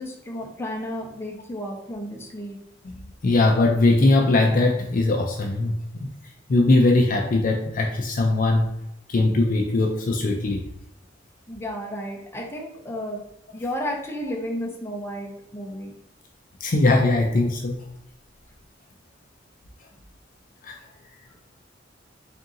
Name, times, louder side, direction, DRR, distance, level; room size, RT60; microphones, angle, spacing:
voice 1, 0.0-2.6 11.5-13.2 13.5-15.9, equal, 15° left, -1 dB, 0.7 m, -32 dB
voice 2, 3.2-6.1 6.5-8.7 9.1-10.6 16.6-17.8 20.6-20.8, left 2 dB, 45° left, 2 dB, 0.4 m, -20 dB
3.6 x 2.7 x 3.8 m, 0.77 s
head